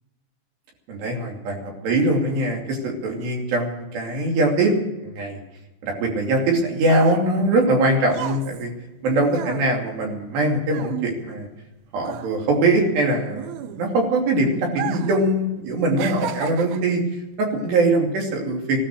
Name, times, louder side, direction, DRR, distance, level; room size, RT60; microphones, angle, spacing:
voice 1, 0.9-4.7 5.0-5.4 5.8-8.7 9.0-11.5 11.9-17.0 17.4-18.8, right 2 dB, 65° right, 0 dB, 4.7 m, -22 dB
sound 1, 6.4-11.7 12.0-14.1 14.7-15.3 15.5-17.0 17.7-17.9, right 10 dB, 85° right, 2.2 m, -34 dB
17.0 x 13.0 x 6.5 m, 1.0 s
omnidirectional pair, 5.3 m